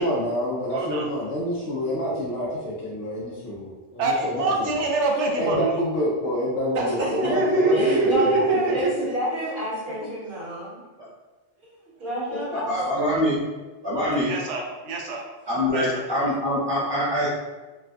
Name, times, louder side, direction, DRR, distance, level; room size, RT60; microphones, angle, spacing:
voice 1, 0.0-4.8 5.4-8.8 12.5-12.6, left 1 dB, 75° left, -6 dB, 0.8 m, -28 dB
voice 2, 0.7-1.1 4.0-5.8 6.7-8.7 14.2-15.2 15.7-16.0, right 3 dB, 90° right, 0 dB, 0.9 m, -24 dB
voice 3, 7.0-7.3 7.7-10.8 11.6-12.7, equal, 60° right, -9 dB, 1.4 m, -29 dB
voice 4, 12.5-13.4 13.8-14.3 15.5-17.3, equal, 35° right, -9 dB, 0.4 m, -24 dB
3.2 x 2.1 x 2.5 m, 1.2 s
omnidirectional pair, 1.1 m